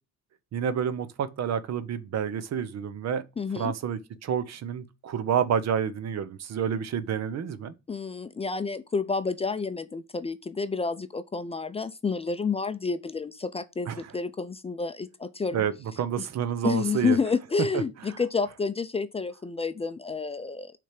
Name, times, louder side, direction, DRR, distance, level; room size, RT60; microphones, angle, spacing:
voice 1, 0.5-3.2 3.6-7.7 13.9-14.0 15.5-15.7 16.0-17.2, right 8 dB, 60° right, 0.7 m, -29 dB
voice 2, 3.4-3.7 7.9-15.6 16.2-16.3 16.6-20.7, left 4 dB, 20° left, 0.4 m, -29 dB
6.1 x 3.4 x 5.8 m
cardioid pair, 90°, 30 cm